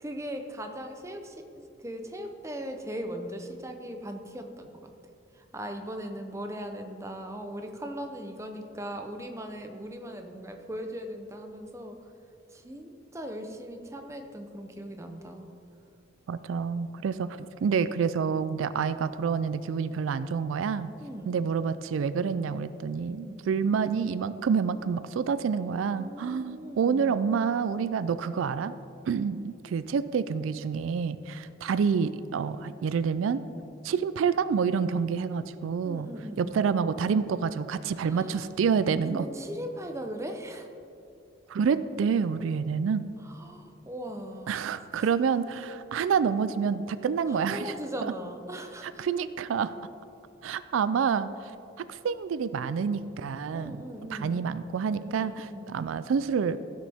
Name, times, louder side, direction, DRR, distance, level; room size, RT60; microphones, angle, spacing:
voice 1, 0.0-1.4 1.8-4.9 5.4-12.0 12.5-15.5 21.0-21.4 23.2-23.5 25.9-27.3 35.8-36.6 38.0-38.5 39.1-40.7 43.3-44.7 44.9-45.1 47.3-49.1 53.5-54.4 55.1-55.7, equal, 15° right, 5 dB, 0.7 m, -39 dB
voice 2, 16.3-20.9 21.2-28.8 29.1-33.4 33.8-36.1 36.4-39.3 41.5-43.1 44.5-47.7 48.0-48.1 48.8-49.7 50.4-51.5 51.8-53.8 54.1-56.6, right 6 dB, 90° right, 14 dB, 0.3 m, -28 dB
15.5 x 6.4 x 3.5 m, 2.6 s
head